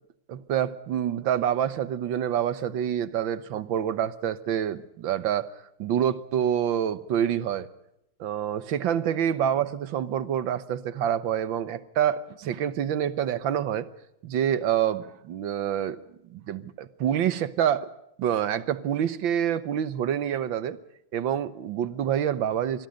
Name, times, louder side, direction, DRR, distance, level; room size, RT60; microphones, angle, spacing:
voice 1, 0.3-5.5 5.8-7.7 8.2-13.9 14.2-16.0 16.3-17.9 18.2-20.8 21.1-22.9, right 9 dB, 85° right, 14 dB, 1.8 m, -27 dB
26.5 x 20.5 x 5.2 m, 0.81 s
omnidirectional pair, 2.1 m